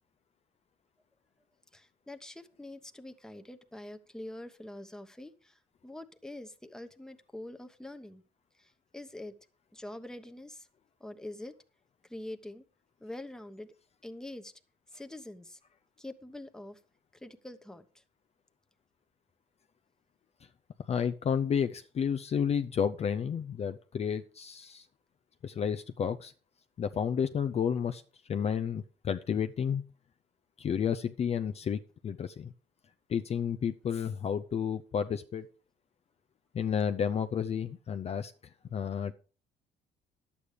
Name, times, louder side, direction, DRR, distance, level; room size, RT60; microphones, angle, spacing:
voice 1, 1.7-8.2 8.5-9.3 9.7-10.7 11.0-11.5 12.0-12.6 13.0-13.7 14.0-14.5 14.9-15.6 16.0-16.8 17.1-18.0, left 1 dB, 5° left, 8 dB, 1.1 m, -45 dB
voice 2, 20.9-24.9 25.4-26.3 26.8-28.0 28.3-29.8 30.6-32.5 33.1-35.5 36.5-38.3 38.7-39.1, left 7 dB, 40° left, 9 dB, 0.6 m, -31 dB
11.0 x 8.4 x 5.1 m, 0.37 s
cardioid pair, 110°, 17 cm